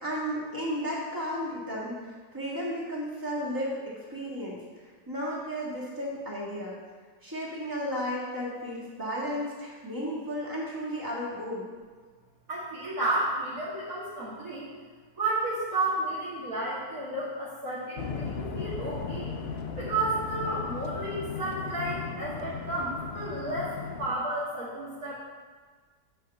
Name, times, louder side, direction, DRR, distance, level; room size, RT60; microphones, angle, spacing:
voice 1, 0.0-6.8 7.2-11.7, equal, 10° right, -5 dB, 1.8 m, -34 dB
voice 2, 12.5-14.7 15.2-19.3 19.8-25.1, right 2 dB, 55° right, -11 dB, 2.4 m, -32 dB
sound 1, 18.0-24.1, left 5 dB, 75° left, 0.5 m, -36 dB
8.2 x 4.7 x 6.8 m, 1.5 s
omnidirectional pair, 1.9 m